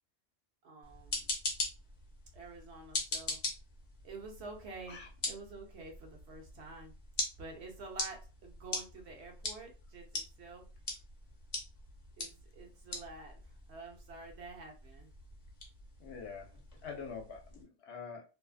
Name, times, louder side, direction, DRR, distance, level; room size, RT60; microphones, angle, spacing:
voice 1, 0.6-1.3 2.3-3.4 4.0-6.9 7.4-10.7 12.2-15.1, right 3 dB, 65° right, 2 dB, 0.9 m, -49 dB
sound 1, 0.8-17.6, left 2 dB, 45° left, 0.8 m, -42 dB
voice 2, 16.0-16.5 16.8-18.2, left 5 dB, 70° left, 2 dB, 0.9 m, -45 dB
2.6 x 2.3 x 2.4 m, 0.32 s
omnidirectional pair, 1.2 m